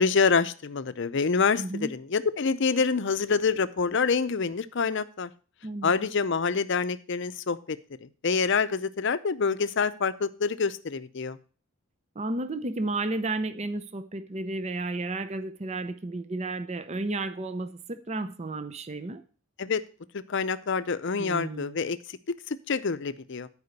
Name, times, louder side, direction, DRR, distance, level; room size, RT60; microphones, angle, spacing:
voice 1, 0.0-5.3 5.8-7.8 8.2-11.4 19.6-19.8 20.3-22.0 22.5-23.5, left 5 dB, 60° left, 0.6 m, -26 dB
voice 2, 1.6-1.9 5.6-5.9 12.2-19.2 21.2-21.8, right 2 dB, 30° right, 0.6 m, -32 dB
9.6 x 5.0 x 6.6 m
head